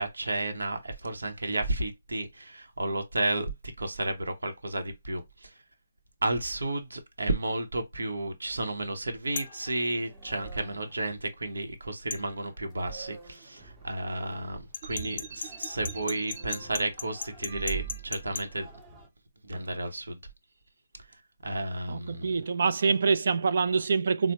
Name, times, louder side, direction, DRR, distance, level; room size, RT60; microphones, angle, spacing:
voice 1, 0.0-3.5 3.8-5.5 6.2-18.7 19.4-20.2 21.4-22.3, right 2 dB, 85° right, 0.8 m, -32 dB
sound 1, 9.3-11.9 12.2-19.1, right 3 dB, 10° right, 0.7 m, -52 dB
sound 2, 9.4-9.6 12.1-12.3 14.7-18.5, left 6 dB, 55° left, 0.4 m, -36 dB
sound 3, 14.8-16.6 17.4-18.4, right 10 dB, 40° right, 0.8 m, -40 dB
voice 2, 21.9-24.3, right 5 dB, 60° right, 0.4 m, -25 dB
4.1 x 2.0 x 2.8 m
hypercardioid pair, 150°, 0 cm